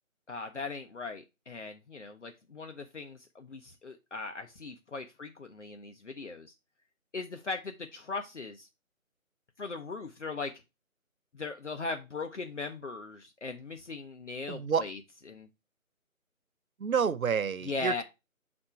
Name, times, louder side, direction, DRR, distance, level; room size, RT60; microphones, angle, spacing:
voice 1, 0.3-6.5 7.1-8.7 9.6-10.5 11.3-15.0 15.3-15.5 17.6-18.0, left 4 dB, 55° left, 0.8 m, -39 dB
voice 2, 14.5-14.8 16.8-18.0, right 6 dB, 75° right, 0.8 m, -29 dB
5.8 x 4.3 x 4.2 m
figure-of-eight pair, 175°, 42 cm